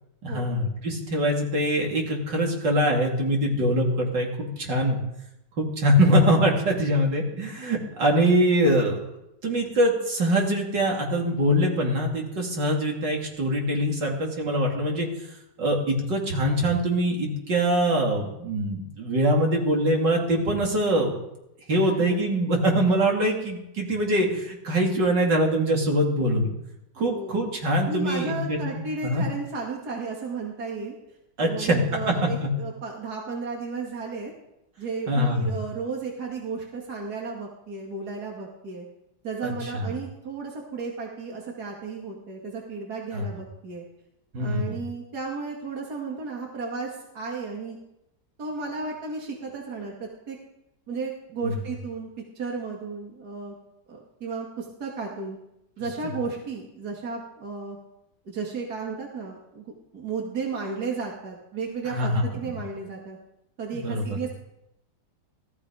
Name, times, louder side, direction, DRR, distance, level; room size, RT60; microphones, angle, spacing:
voice 1, 0.2-5.0 5.6-9.1 9.4-15.1 15.6-21.2 21.7-26.5 27.0-29.2 31.4-31.8 32.1-32.2 32.4-32.5 35.1-35.5 39.4-39.9 43.1-43.3 44.3-44.8 51.4-51.5 61.8-62.5 63.7-64.2, equal, 80° right, 0 dB, 3.8 m, -23 dB
voice 2, 21.8-22.4 27.0-27.4 27.9-31.0 31.4-34.3 34.8-38.9 39.2-43.8 44.4-47.8 48.4-50.4 50.9-52.1 52.4-53.5 53.9-55.4 55.8-57.8 58.3-63.2 63.6-64.3, right 4 dB, 60° right, -1 dB, 2.8 m, -34 dB
18.0 x 15.0 x 5.0 m, 0.86 s
omnidirectional pair, 1.9 m